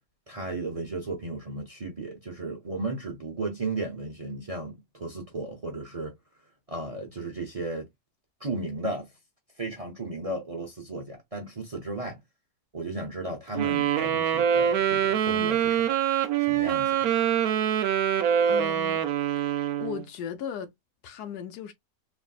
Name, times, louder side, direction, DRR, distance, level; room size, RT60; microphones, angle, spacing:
voice 1, 0.3-6.1 6.7-7.9 8.4-9.1 9.6-12.2 12.7-15.9 16.4-17.1, right 2 dB, 35° right, 0.5 m, -35 dB
Wind instrument woodwind instrument, 13.5-20.0, right 9 dB, 75° right, 1.1 m, -24 dB
voice 2, 18.5-19.1 19.8-20.7 21.0-21.7, left 8 dB, 85° left, 1.2 m, -36 dB
3.3 x 2.5 x 2.3 m
omnidirectional pair, 1.6 m